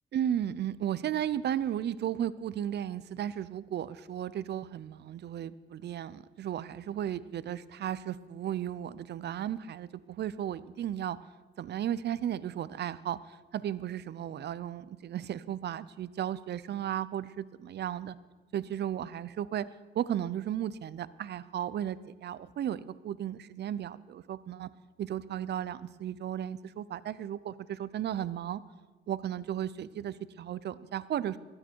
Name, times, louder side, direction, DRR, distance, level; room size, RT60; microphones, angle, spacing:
voice 1, 0.1-11.2 11.6-18.1 18.5-19.6 19.9-24.7 25.0-28.6 29.1-31.4, right 10 dB, 60° right, 17 dB, 0.6 m, -35 dB
22.0 x 8.8 x 4.6 m, 1.3 s
cardioid pair, 90°, 20 cm